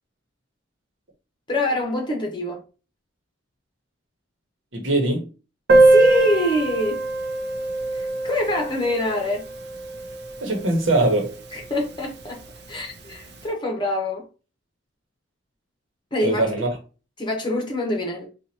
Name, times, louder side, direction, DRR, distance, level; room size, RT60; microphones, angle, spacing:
voice 1, 1.5-2.6 5.8-7.0 7.9-9.4 11.5-12.4 12.7-14.2 16.1-16.5 17.2-18.3, left 1 dB, 25° left, 1.1 m, -25 dB
voice 2, 4.7-5.3 10.4-11.4 16.2-16.7, right 2 dB, 75° right, 1.1 m, -21 dB
Piano, 5.7-11.1 11.3-11.4 11.6-11.8 12.1-12.2 13.0-13.1, right 2 dB, 60° right, 0.6 m, -21 dB
4.0 x 2.5 x 2.8 m
head